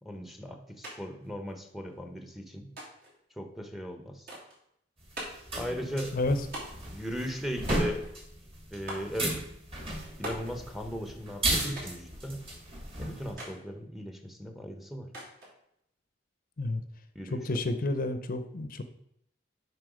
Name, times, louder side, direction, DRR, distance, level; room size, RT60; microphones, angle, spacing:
voice 1, 0.0-2.8 3.3-4.3 5.6-6.2 6.9-8.1 8.7-9.5 10.2-12.5 12.9-15.1 17.1-17.6, equal, ahead, 5 dB, 0.8 m, -38 dB
sound 1, 0.8-1.0 1.2-2.0 2.8-3.2 4.3-4.6 5.2-5.5 6.5-6.9 7.7-8.2 8.9-9.2 10.2-10.6 11.8-12.1 13.4-13.6 15.1-15.5, right 1 dB, 55° right, 3.2 m, -41 dB
sound 2, 5.0-13.3, right 1 dB, 30° right, 2.1 m, -35 dB
voice 2, 17.3-18.8, left 2 dB, 50° left, 9 dB, 0.6 m, -30 dB
7.7 x 5.4 x 4.9 m, 0.75 s
head